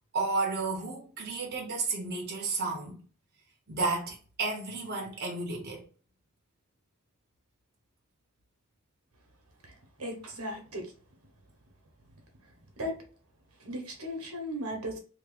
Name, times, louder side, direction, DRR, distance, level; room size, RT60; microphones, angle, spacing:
voice 1, 0.1-3.0 3.7-5.8, right 3 dB, 50° right, 0.9 m, -32 dB
voice 2, 10.0-10.8 12.8-12.9 13.6-15.0, equal, 80° right, 1.1 m, -36 dB
2.9 x 2.6 x 3.9 m
head